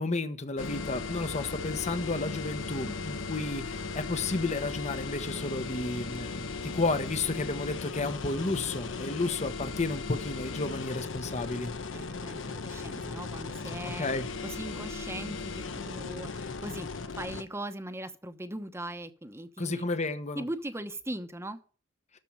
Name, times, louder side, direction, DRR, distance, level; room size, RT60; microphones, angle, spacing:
voice 1, 0.0-11.7 13.9-14.3 19.6-20.4, left 3 dB, 35° left, 1.1 m, -32 dB
sound 1, 0.6-17.4, left 4 dB, 80° left, 1.1 m, -37 dB
voice 2, 11.9-14.1 14.4-19.9 20.3-21.6, right 1 dB, 15° right, 1.0 m, -40 dB
13.5 x 4.5 x 8.7 m
head